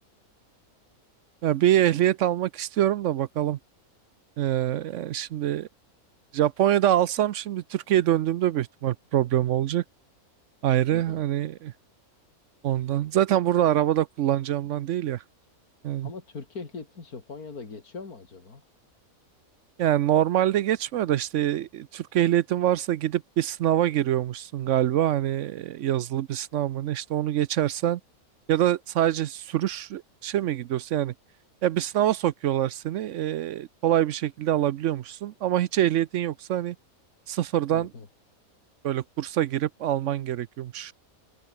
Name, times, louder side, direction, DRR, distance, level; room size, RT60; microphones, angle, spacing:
voice 1, 1.4-3.6 4.4-5.7 6.3-9.8 10.6-11.7 12.6-15.2 15.8-16.1 19.8-28.0 28.5-31.1 31.6-36.8 37.3-37.9 38.8-40.9, right 12 dB, 65° right, 0.8 m, -25 dB
voice 2, 10.9-11.2 16.0-18.6 37.7-38.1, left 4 dB, 90° left, 3.3 m, -40 dB
open air
omnidirectional pair, 1.5 m